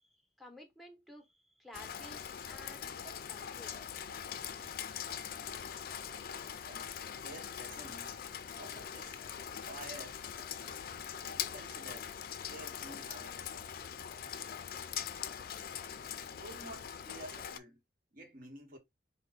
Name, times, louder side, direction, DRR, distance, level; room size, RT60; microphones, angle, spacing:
voice 1, 0.0-3.8, equal, ahead, 0.9 m, -54 dB
Rain, 1.7-17.6, left 8 dB, 55° left, 0.4 m, -42 dB
sound 1, 3.9-17.4, right 1 dB, 35° right, 0.7 m, -68 dB
voice 2, 6.6-8.2 8.5-10.3 11.3-12.1 12.4-13.5 16.4-17.8 18.1-18.8, right 1 dB, 50° right, 1.2 m, -51 dB
4.5 x 2.2 x 3.8 m
head